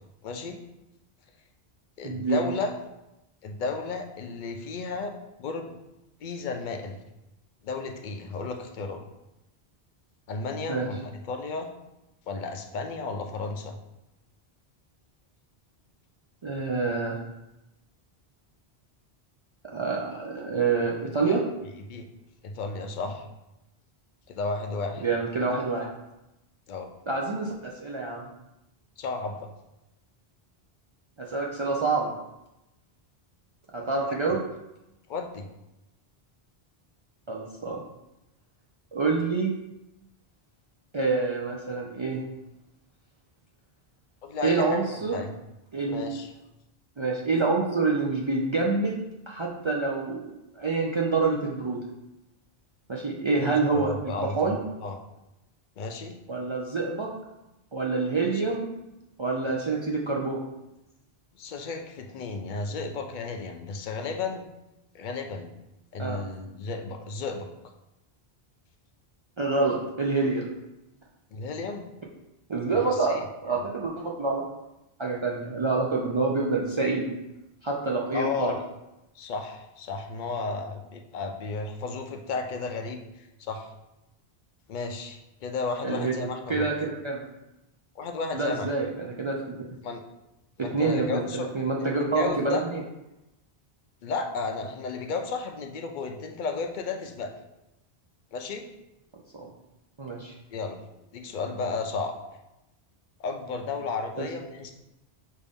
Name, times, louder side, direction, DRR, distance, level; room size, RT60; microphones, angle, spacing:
voice 1, 0.2-0.6 2.0-2.7 3.4-5.1 5.4-5.7 6.2-7.0 7.6-9.0 10.3-11.7 12.3-13.8 21.2-21.4 21.9-22.1 22.4-23.3 24.3-25.0 26.7-26.9 29.0-29.5 34.1-34.2 35.1-35.5 44.2-45.3 45.9-46.3 53.4-55.0 55.8-56.2 58.2-58.4 59.5-59.6 61.3-64.4 64.9-65.5 65.9-67.5 71.3-71.9 72.7-73.3 73.5-73.6 78.1-78.6 79.1-83.7 84.7-86.7 88.0-88.7 89.8-90.0 90.6-91.5 92.1-92.6 94.0-97.3 98.3-98.6 100.5-100.8 101.1-102.1 103.2-104.7, left 4 dB, 60° left, 4 dB, 0.6 m, -33 dB
voice 2, 2.0-2.4 10.7-10.9 16.4-17.2 19.7-21.4 25.0-25.9 27.1-28.3 31.2-32.1 33.7-34.4 37.3-37.8 38.9-39.5 40.9-42.2 44.4-45.2 45.7-46.0 47.0-49.0 49.3-50.3 50.5-51.8 52.9-53.9 54.2-54.6 56.3-57.1 57.7-58.7 59.2-60.4 66.0-66.2 69.4-70.5 72.5-74.4 75.0-77.1 77.6-78.5 85.8-86.1 86.5-87.2 88.3-89.3 90.6-92.8 99.3-99.5 100.0-100.3 104.2-104.3, right 3 dB, 50° right, -2 dB, 0.3 m, -27 dB
5.4 x 2.5 x 3.5 m, 0.94 s
omnidirectional pair, 1.0 m